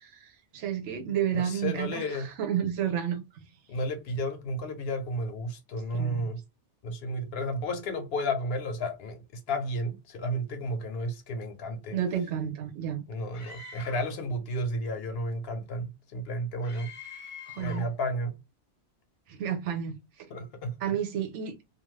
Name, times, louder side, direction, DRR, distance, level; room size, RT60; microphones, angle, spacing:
voice 1, 0.0-3.5 5.9-6.3 11.9-13.0 17.5-17.9 19.3-20.0 20.8-21.6, right 9 dB, 85° right, 1.0 m, -31 dB
voice 2, 1.3-2.3 3.7-6.4 6.8-12.0 13.1-16.9 17.6-18.4 20.3-20.8, equal, 65° left, 0.8 m, -32 dB
Screaming, 13.3-14.2 16.6-18.0, left 4 dB, 40° left, 0.5 m, -45 dB
2.6 x 2.4 x 3.1 m
omnidirectional pair, 1.2 m